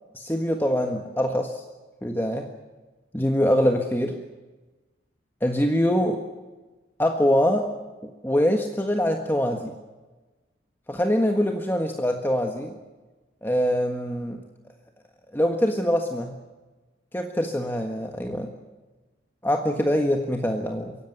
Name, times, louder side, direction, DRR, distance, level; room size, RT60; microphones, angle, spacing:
voice 1, 0.1-1.6 2.0-2.5 3.1-4.2 5.4-6.2 7.0-7.7 8.2-9.7 10.9-12.7 13.4-14.4 15.3-16.4 17.1-18.5 19.4-21.0, equal, 10° left, 3 dB, 1.5 m, -24 dB
24.5 x 17.0 x 9.6 m, 1.2 s
head